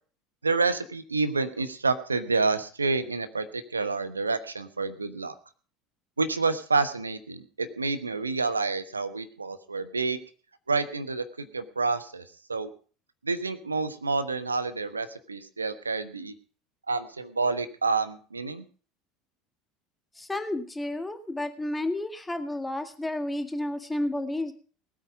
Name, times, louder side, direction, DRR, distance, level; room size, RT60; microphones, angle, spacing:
voice 1, 0.4-5.3 6.2-10.2 10.7-12.2 12.5-12.7 13.2-16.3 16.9-18.6, right 4 dB, 90° right, 11 dB, 1.1 m, -28 dB
voice 2, 20.2-24.5, left 1 dB, 10° left, 8 dB, 1.9 m, -31 dB
19.5 x 8.9 x 5.1 m, 0.40 s
figure-of-eight pair, 70°, 0 cm